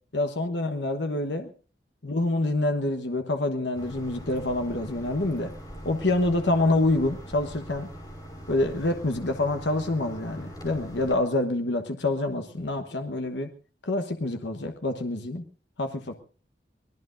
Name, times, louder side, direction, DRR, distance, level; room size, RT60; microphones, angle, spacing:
voice 1, 0.1-1.5 2.0-5.5 5.8-7.9 8.5-13.5 13.8-15.4 15.8-16.1, left 2 dB, 80° left, 6 dB, 1.2 m, -26 dB
sound 1, 3.7-11.1, equal, 25° left, 5.7 m, -42 dB
24.5 x 18.5 x 2.6 m, 0.39 s
head